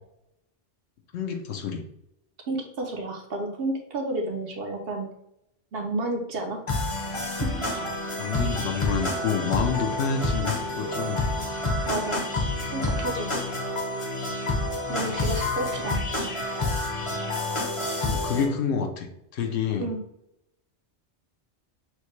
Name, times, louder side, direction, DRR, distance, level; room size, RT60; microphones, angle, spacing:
voice 1, 1.1-1.8 8.2-11.2 18.1-19.9, left 6 dB, 70° left, 5 dB, 0.9 m, -28 dB
voice 2, 2.5-5.1 5.7-6.6 7.4-7.5 11.9-12.3 12.7-13.4 14.9-16.3 19.8-20.0, right 2 dB, 60° right, 2 dB, 0.9 m, -31 dB
sound 1, 6.7-18.4, left 2 dB, 30° left, 0.7 m, -28 dB
6.3 x 2.1 x 3.1 m, 0.80 s
omnidirectional pair, 1.2 m